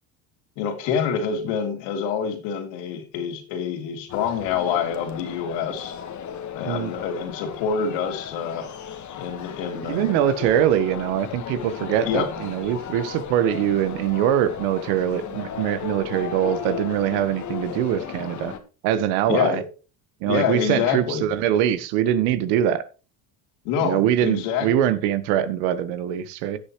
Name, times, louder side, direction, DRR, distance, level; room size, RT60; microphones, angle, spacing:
voice 1, 0.6-5.9 6.5-8.7 9.2-10.2 12.1-12.3 19.3-19.6 20.3-21.2 23.6-24.7, left 7 dB, 75° left, 3.2 m, -26 dB
sound 1, 4.1-18.6, left 8 dB, 40° left, 1.5 m, -35 dB
voice 2, 9.8-18.5 18.8-19.6 20.2-22.8 23.8-26.6, right 10 dB, 80° right, 1.3 m, -23 dB
17.5 x 6.8 x 3.1 m
supercardioid pair, 115°, 45 cm